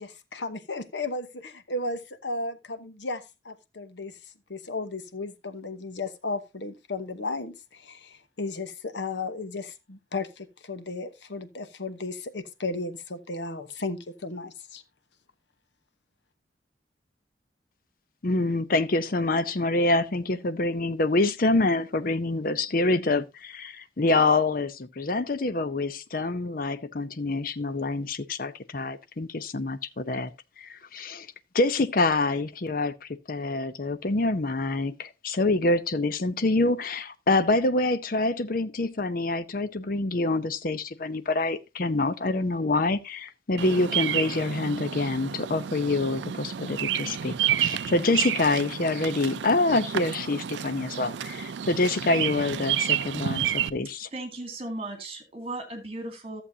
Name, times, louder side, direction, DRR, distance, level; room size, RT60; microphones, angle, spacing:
voice 1, 0.0-4.1 4.5-14.8, left 3 dB, 85° left, 1.0 m, -34 dB
voice 2, 18.2-30.3 30.6-31.3 31.5-54.1, left 2 dB, 50° left, 0.7 m, -26 dB
Bird vocalization bird call bird song, 43.6-53.7, right 10 dB, 80° right, 0.4 m, -30 dB
voice 3, 54.1-56.4, right 2 dB, 35° right, 2.3 m, -36 dB
14.0 x 7.1 x 2.7 m
head